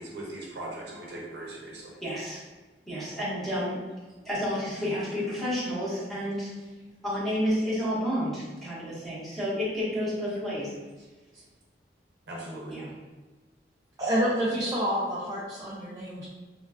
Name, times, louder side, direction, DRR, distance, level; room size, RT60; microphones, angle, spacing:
voice 1, 0.0-1.9 12.3-12.8, right 1 dB, 70° right, -3 dB, 0.7 m, -39 dB
voice 2, 2.0-2.4 2.9-3.8 4.2-6.5 7.0-10.7 12.7-12.9, equal, ahead, -10 dB, 1.0 m, -30 dB
voice 3, 14.0-16.2, equal, 20° right, -7 dB, 0.4 m, -28 dB
3.1 x 2.3 x 2.4 m, 1.3 s
head